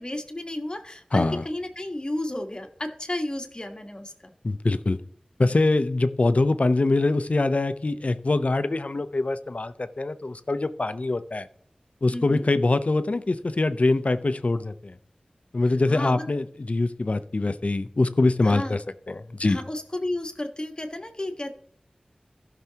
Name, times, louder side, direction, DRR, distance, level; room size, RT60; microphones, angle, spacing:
voice 1, 0.0-4.3 12.1-12.4 15.7-16.2 18.4-18.8 19.4-21.5, left 1 dB, 35° left, 4 dB, 1.5 m, -32 dB
voice 2, 1.1-1.4 4.4-5.0 5.4-11.5 12.0-14.9 15.5-18.8 19.1-19.6, left 2 dB, 60° left, 12 dB, 0.7 m, -24 dB
15.5 x 6.0 x 2.9 m, 0.64 s
wide cardioid pair, 40°, 3 cm